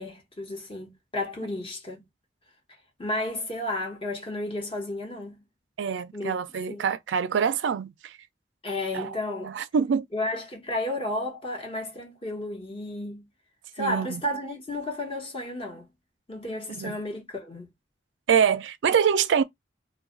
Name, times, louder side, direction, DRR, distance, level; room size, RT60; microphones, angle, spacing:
voice 1, 0.0-2.0 3.0-5.4 6.1-6.3 6.7-6.8 8.6-9.5 10.1-13.2 13.7-15.9 16.3-17.7, left 1 dB, 30° left, 1.0 m, -32 dB
voice 2, 5.8-8.1 8.9-9.2 9.4-10.1 13.8-14.2 16.7-17.0 18.3-19.4, right 7 dB, 85° right, 0.4 m, -25 dB
2.3 x 2.2 x 3.6 m
head